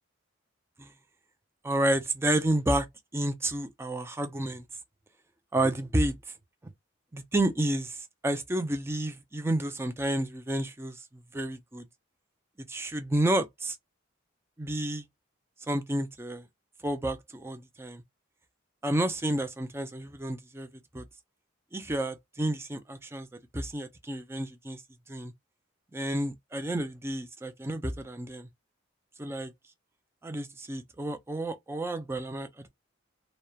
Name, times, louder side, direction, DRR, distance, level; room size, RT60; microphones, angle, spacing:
voice 1, 1.6-2.9 3.1-4.6 5.5-6.1 7.1-11.0 11.3-11.9 12.7-13.8 14.6-15.0 15.7-16.4 16.8-18.0 18.8-20.7 20.9-21.0 21.7-23.3 23.5-24.8 25.1-25.3 25.9-28.5 29.2-29.5 30.2-32.7, right 1 dB, 10° right, 0.4 m, -30 dB
2.8 x 2.1 x 2.3 m
head